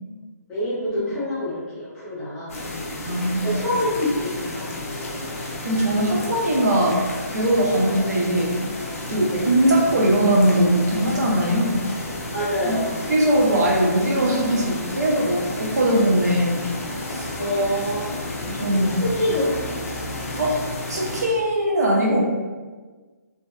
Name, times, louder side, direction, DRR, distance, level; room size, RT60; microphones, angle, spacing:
voice 1, 0.5-2.9 3.4-4.9 9.3-9.4 12.3-12.9 17.4-18.2 18.9-19.4 19.7-20.0, left 1 dB, 10° left, -13 dB, 0.8 m, -26 dB
sound 1, 2.5-21.2, left 1 dB, 50° left, 0.5 m, -32 dB
voice 2, 3.1-3.6 5.6-7.1 7.3-8.6 9.0-11.8 12.7-12.8 13.1-16.7 17.1-17.3 18.5-19.0 20.4-20.6 20.9-22.2, right 1 dB, 65° right, -3 dB, 0.6 m, -20 dB
2.6 x 2.1 x 2.3 m, 1.4 s
hypercardioid pair, 165°, 9 cm